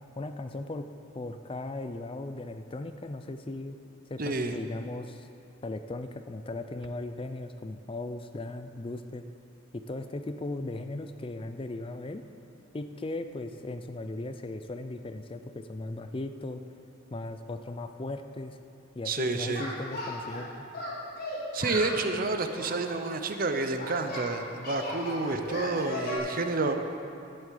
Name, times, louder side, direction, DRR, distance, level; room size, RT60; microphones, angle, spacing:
voice 1, 0.0-3.8 4.1-5.3 5.6-9.2 9.7-12.3 12.7-16.6 17.1-18.6 19.0-20.7, left 2 dB, 25° left, 9 dB, 0.4 m, -37 dB
voice 2, 4.2-4.6 19.1-19.6 21.5-26.7, right 3 dB, 45° right, 7 dB, 0.8 m, -29 dB
Singing, 19.5-20.4 20.7-22.0 22.6-24.3 24.6-26.2, left 1 dB, 50° left, 3.5 m, -36 dB
12.0 x 7.7 x 8.4 m, 2.7 s
head